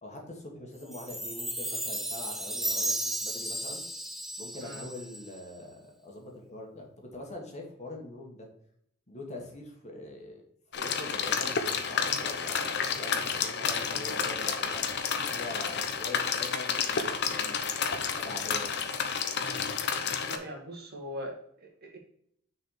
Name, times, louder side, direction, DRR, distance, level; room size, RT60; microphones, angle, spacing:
voice 1, 0.0-3.8 4.4-5.7 6.0-8.5 9.1-10.4 10.7-18.8, left 1 dB, 35° left, 1 dB, 1.8 m, -43 dB
Chime, 0.9-5.4, right 1 dB, ahead, 0.7 m, -34 dB
sound 1, 10.7-20.4, left 6 dB, 55° left, 0.9 m, -30 dB
voice 2, 20.3-22.0, equal, 50° right, 0 dB, 2.0 m, -41 dB
6.4 x 4.9 x 4.9 m, 0.69 s
head